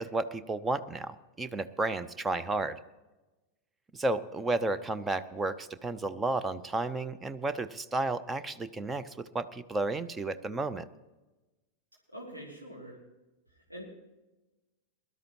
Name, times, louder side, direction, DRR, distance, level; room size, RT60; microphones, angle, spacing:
voice 1, 0.0-2.8 3.9-10.9, right 2 dB, 15° right, 12 dB, 0.6 m, -32 dB
voice 2, 12.1-12.9 13.5-13.8, right 1 dB, 90° right, -4 dB, 2.9 m, -45 dB
21.0 x 12.0 x 3.0 m, 1.1 s
figure-of-eight pair, 90°, 0 cm